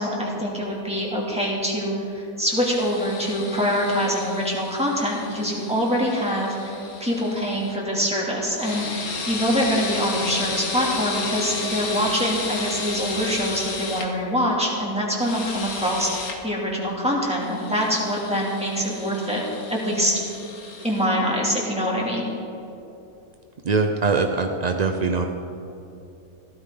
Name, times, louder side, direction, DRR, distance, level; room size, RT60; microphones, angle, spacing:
voice 1, 0.0-6.7 7.0-16.1 16.4-19.4 19.7-20.1 20.8-22.3, equal, 5° right, -4 dB, 2.5 m, -24 dB
sound 1, 2.5-7.8 8.5-14.1 15.2-16.4 17.4-21.1, left 3 dB, 85° left, 1.8 m, -33 dB
voice 2, 23.6-25.2, right 4 dB, 60° right, 4 dB, 0.4 m, -22 dB
16.0 x 13.0 x 3.8 m, 2.8 s
omnidirectional pair, 1.5 m